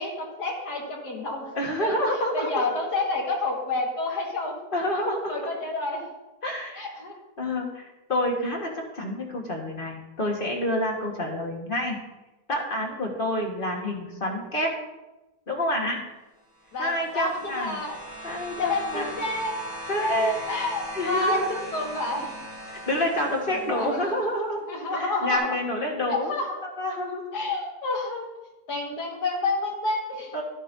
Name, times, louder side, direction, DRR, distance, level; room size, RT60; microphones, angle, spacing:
voice 1, 0.0-1.5 1.8-1.9 2.3-4.6 5.3-6.0 6.8-7.1 16.7-18.0 18.6-19.6 20.5-22.4 23.5-24.1 24.7-25.5 26.1-26.6 27.3-28.3 28.7-30.3, left 2 dB, 70° left, -1 dB, 2.3 m, -29 dB
voice 2, 1.5-2.7 4.7-5.3 6.4-6.9 7.4-12.0 12.5-14.7 15.5-16.0 16.8-17.8 18.2-19.1 19.9-20.5 20.9-21.6 22.9-24.6 24.9-26.3 26.6-27.3 30.3-30.4, left 1 dB, 35° left, 0 dB, 1.5 m, -28 dB
sound 1, 16.5-24.3 25.4-25.5, equal, 70° right, 3.0 m, -39 dB
13.0 x 8.0 x 2.7 m, 1.0 s
omnidirectional pair, 1.8 m